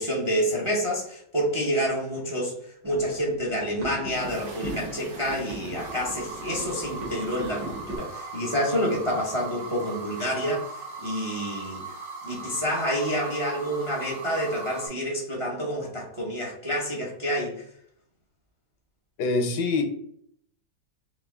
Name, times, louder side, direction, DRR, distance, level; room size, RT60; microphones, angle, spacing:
voice 1, 0.0-11.9 12.2-17.6, equal, 25° right, -2 dB, 0.6 m, -28 dB
sound 1, 2.8-8.0, right 1 dB, 60° right, 1.8 m, -39 dB
sound 2, 4.1-14.9, right 4 dB, 75° right, 1.9 m, -39 dB
voice 2, 19.2-19.8, left 3 dB, 75° left, 4 dB, 1.4 m, -24 dB
4.2 x 2.9 x 3.5 m, 0.68 s
omnidirectional pair, 1.9 m